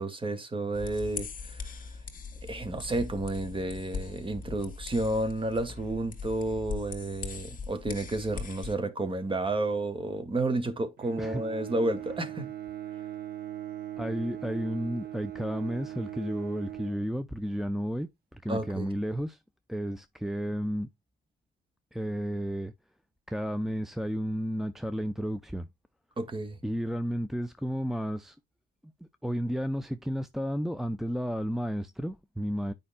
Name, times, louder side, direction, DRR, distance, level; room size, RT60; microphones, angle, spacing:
voice 1, 0.0-1.7 2.4-12.5 18.5-18.9 26.2-26.6, right 2 dB, 25° right, 1.8 m, -31 dB
sound 1, 0.7-8.8, left 5 dB, 45° left, 2.3 m, -40 dB
Bowed string instrument, 11.0-17.7, right 12 dB, 50° right, 1.0 m, -40 dB
voice 2, 14.0-19.4 19.7-20.9 21.9-22.7 23.3-25.7 26.6-28.4 29.2-32.7, equal, ahead, 0.5 m, -32 dB
9.9 x 5.3 x 2.2 m
cardioid pair, 90°, 20 cm